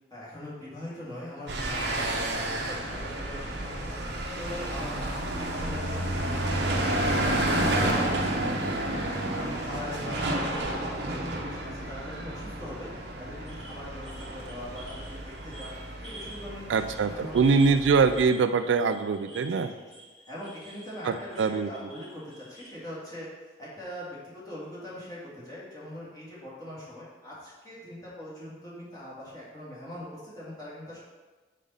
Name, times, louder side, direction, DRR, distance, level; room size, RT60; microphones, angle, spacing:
voice 1, 0.1-8.9 9.3-12.9 13.2-15.7 16.0-17.9 19.5-19.8 20.3-31.0, left 1 dB, 20° left, -8 dB, 2.0 m, -41 dB
sound 1, 1.5-18.2, right 1 dB, 65° right, 0.8 m, -31 dB
sound 2, 13.5-16.4 16.7-17.0 17.3-22.7, right 1 dB, ahead, 1.9 m, -48 dB
voice 2, 16.7-19.7 21.0-21.7, right 5 dB, 85° right, 11 dB, 0.3 m, -23 dB
5.1 x 4.2 x 5.5 m, 1.3 s
head